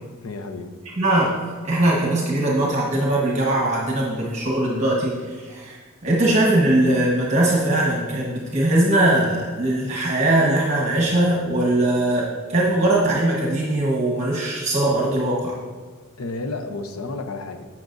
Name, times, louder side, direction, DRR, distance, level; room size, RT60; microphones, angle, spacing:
voice 1, 0.2-0.8 16.2-17.7, left 3 dB, 80° left, 7 dB, 0.7 m, -31 dB
voice 2, 1.0-1.4 1.6-5.8 6.0-15.6, right 1 dB, 30° right, -3 dB, 1.2 m, -20 dB
15.5 x 5.9 x 2.6 m, 1.5 s
head